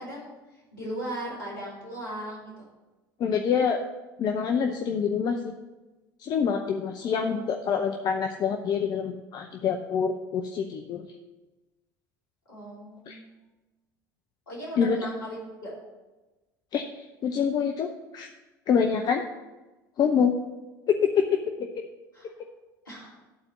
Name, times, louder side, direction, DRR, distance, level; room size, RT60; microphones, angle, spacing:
voice 1, 0.0-2.7 6.5-7.6 12.5-13.3 14.5-15.7 22.1-22.3 22.8-23.1, right 1 dB, 80° left, -5 dB, 3.0 m, -38 dB
voice 2, 3.2-3.8 4.2-5.5 6.2-11.1 13.1-13.2 14.8-15.0 16.7-18.3 18.7-19.2 20.0-20.3 20.9-21.4 21.8-21.9, left 7 dB, 40° left, 4 dB, 0.7 m, -26 dB
11.0 x 4.4 x 7.4 m, 1.1 s
figure-of-eight pair, 70°, 11 cm